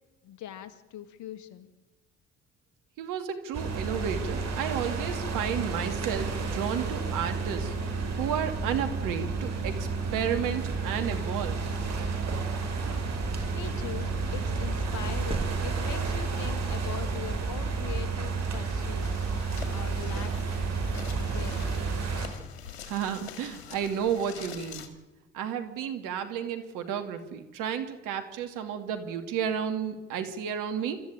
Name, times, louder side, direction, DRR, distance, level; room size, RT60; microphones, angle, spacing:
voice 1, 0.2-1.7 13.5-19.3 19.7-20.5 21.2-21.7, left 11 dB, 65° left, 11 dB, 2.1 m, -41 dB
voice 2, 3.0-7.7 8.2-11.6 22.8-24.9 25.3-31.0, right 8 dB, 75° right, 7 dB, 2.7 m, -32 dB
sound 1, 3.5-22.3, right 4 dB, 55° right, 5.2 m, -31 dB
sound 2, 12.7-18.1, right 3 dB, 15° right, 1.2 m, -39 dB
sound 3, 19.0-24.9, left 8 dB, 90° left, 2.1 m, -45 dB
26.0 x 14.0 x 9.0 m, 1.2 s
hypercardioid pair, 55°, 32 cm